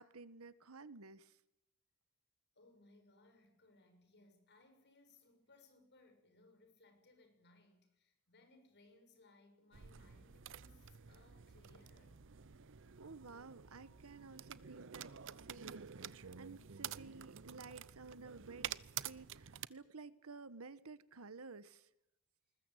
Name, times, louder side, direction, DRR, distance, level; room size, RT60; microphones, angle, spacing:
voice 1, 0.0-1.4 13.0-18.7 19.0-21.9, right 4 dB, 80° right, 1.2 m, -54 dB
voice 2, 2.5-12.3, left 2 dB, 55° left, 6.6 m, -67 dB
sound 1, 9.7-19.7, right 9 dB, 60° right, 0.8 m, -49 dB
21.0 x 20.5 x 9.1 m
head